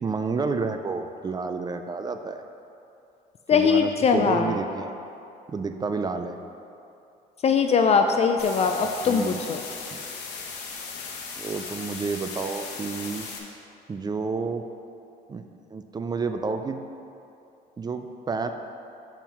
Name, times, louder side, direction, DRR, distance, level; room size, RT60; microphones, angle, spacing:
voice 1, 0.0-2.4 3.5-5.0 5.5-6.4 9.0-9.4 9.9-10.0 11.3-13.3 13.9-14.6 15.3-15.4 15.7-16.8 17.8-18.5, right 4 dB, 25° right, 7 dB, 0.4 m, -30 dB
voice 2, 3.5-4.5 7.4-9.6, left 5 dB, 40° left, 5 dB, 0.4 m, -21 dB
sound 1, 8.4-13.4, left 5 dB, 85° left, 1.0 m, -37 dB
7.4 x 4.6 x 5.4 m, 2.7 s
cardioid pair, 110°, 17 cm